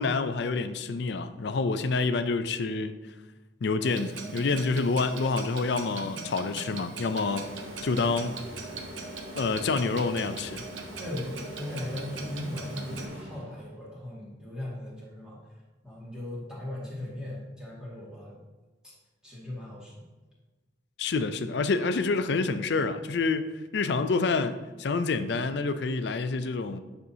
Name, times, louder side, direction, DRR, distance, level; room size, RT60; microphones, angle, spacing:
voice 1, 0.0-3.0 3.6-7.5 7.8-8.4 9.4-10.6 21.0-26.8, left 4 dB, 65° left, 11 dB, 0.4 m, -28 dB
Clock, 3.8-13.1, right 4 dB, 85° right, 0.8 m, -41 dB
sound 1, 7.2-13.8, right 1 dB, 65° right, 2.3 m, -43 dB
voice 2, 11.0-15.4 15.8-18.4 18.8-18.9 19.2-20.0 21.1-21.2, left 1 dB, 5° right, -7 dB, 2.0 m, -38 dB
9.3 x 5.6 x 2.8 m, 1.2 s
head